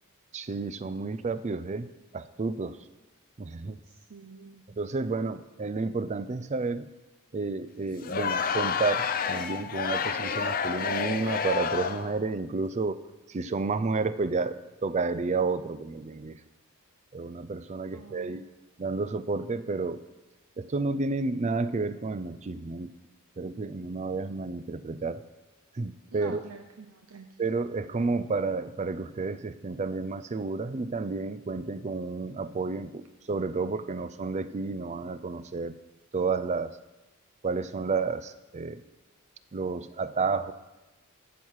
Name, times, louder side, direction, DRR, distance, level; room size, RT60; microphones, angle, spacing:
voice 1, 0.3-1.9 2.1-2.8 3.4-3.8 4.8-6.9 7.3-13.0 13.3-16.4 17.1-18.4 18.8-20.0 20.6-22.9 23.4-25.2 25.8-26.4 27.4-35.7 36.1-36.7 37.4-38.8 39.5-40.5, right 4 dB, 30° right, 13 dB, 0.4 m, -31 dB
voice 2, 3.8-4.6 17.9-18.4 26.1-27.3, right 4 dB, 70° right, 4 dB, 0.7 m, -46 dB
Crowd, 8.0-12.2, left 6 dB, 40° left, 0.5 m, -29 dB
12.5 x 4.7 x 7.4 m, 1.1 s
head